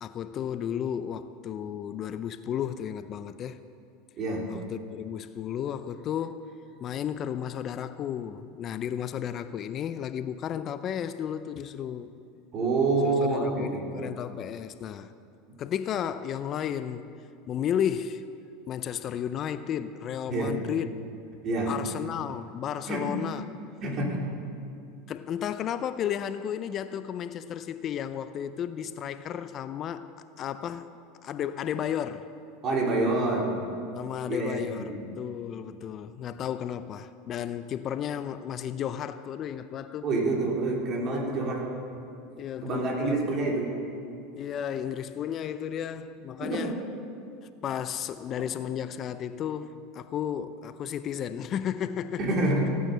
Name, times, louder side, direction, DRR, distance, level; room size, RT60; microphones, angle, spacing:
voice 1, 0.0-3.6 4.5-6.5 6.8-12.1 13.3-15.1 15.6-17.1 17.5-18.2 18.7-20.9 21.7-23.5 25.1-30.1 30.4-30.9 31.2-32.3 33.9-40.1 42.3-43.6 44.3-46.8 47.6-52.3, left 9 dB, 40° left, 0.5 m, -33 dB
voice 2, 12.5-13.9 20.3-20.6 21.4-21.7 22.9-23.0 23.8-24.3 32.6-33.6 34.3-35.0 40.0-41.6 42.6-43.7 46.4-46.7 52.2-52.8, right 2 dB, 40° right, 3.5 m, -27 dB
16.0 x 9.4 x 6.7 m
supercardioid pair, 110°, 0 cm